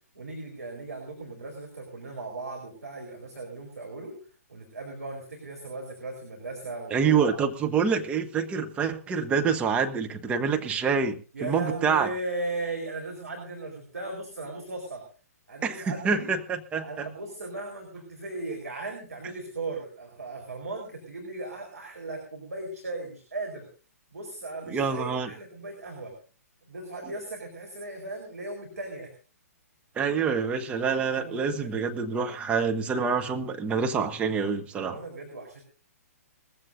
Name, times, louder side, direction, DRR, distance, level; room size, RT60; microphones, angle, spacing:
voice 1, 0.1-4.1 4.5-7.4 11.3-15.0 15.5-16.3 16.8-23.7 24.1-26.1 26.7-29.1 31.0-31.7 34.8-35.6, right 2 dB, 70° right, 1 dB, 4.5 m, -37 dB
voice 2, 6.9-12.1 15.6-17.1 24.7-25.3 30.0-35.0, right 6 dB, 15° right, 6 dB, 1.1 m, -26 dB
20.5 x 15.5 x 2.7 m, 0.36 s
figure-of-eight pair, 120°, 9 cm